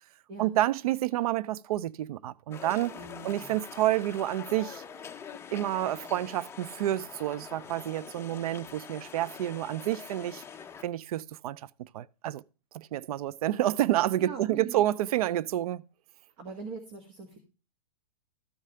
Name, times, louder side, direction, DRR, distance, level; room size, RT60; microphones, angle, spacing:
voice 1, 0.4-2.9 3.2-4.8 5.5-10.4 10.8-12.4 12.7-15.8, right 14 dB, 65° right, 0.4 m, -29 dB
sound 1, 2.5-10.8, left 7 dB, 10° left, 0.6 m, -45 dB
voice 2, 2.9-3.5 14.2-14.8 16.4-17.4, right 5 dB, 45° right, 1.7 m, -42 dB
13.5 x 5.0 x 5.5 m
hypercardioid pair, 130°, 20 cm